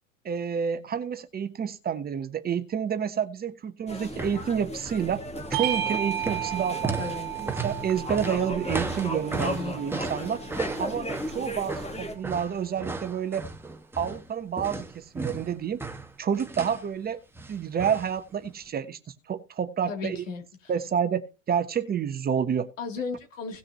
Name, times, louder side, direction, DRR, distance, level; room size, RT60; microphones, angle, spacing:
voice 1, 0.2-5.2 5.5-7.0 7.4-10.4 10.8-13.4 14.0-15.8 16.2-17.2 17.5-19.0 19.3-20.2 20.7-22.7, right 7 dB, 25° right, 11 dB, 1.1 m, -29 dB
sound 1, 3.9-12.1, equal, 15° left, 2.7 m, -36 dB
sound 2, 4.1-4.5 4.7-5.1 5.3-14.3 14.6-16.9 17.4-18.2 18.4-18.5, right 3 dB, 5° right, 1.5 m, -35 dB
Bell / Doorbell, 5.5-10.4, right 11 dB, 45° right, 2.8 m, -33 dB
voice 2, 7.0-7.3 9.3-9.7 19.9-20.7 22.8-23.6, left 4 dB, 75° left, 3 dB, 3.1 m, -35 dB
18.0 x 6.4 x 3.0 m, 0.30 s
figure-of-eight pair, 85°, 39 cm